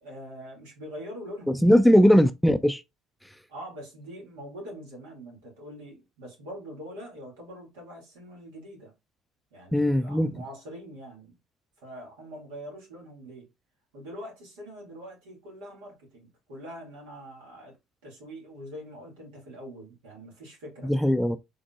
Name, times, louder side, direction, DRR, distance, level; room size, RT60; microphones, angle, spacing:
voice 1, 0.0-2.0 3.5-8.9 9.5-11.3 11.8-13.5 13.9-17.8 18.0-20.9, equal, 90° right, 2.1 m, -43 dB
voice 2, 1.5-2.8 9.7-10.3 20.8-21.4, equal, 5° left, 0.3 m, -20 dB
3.8 x 3.6 x 2.4 m
supercardioid pair, 75°, 0 cm